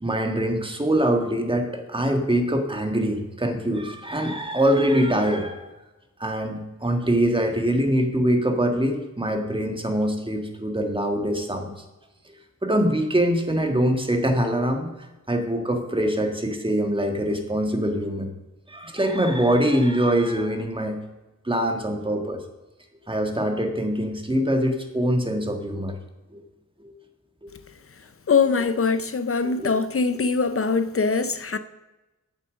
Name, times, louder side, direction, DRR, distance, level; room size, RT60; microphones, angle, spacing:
voice 1, 0.0-5.7 6.2-11.7 12.3-12.4 12.6-14.9 15.3-18.3 18.7-21.0 21.4-22.4 23.1-25.9 26.3-26.4 26.8-26.9 27.4-27.5 29.4-29.7, right 1 dB, 15° right, 1.6 m, -23 dB
voice 2, 28.3-31.6, left 5 dB, 45° left, 0.6 m, -22 dB
8.4 x 7.6 x 6.2 m
wide cardioid pair, 70°, 31 cm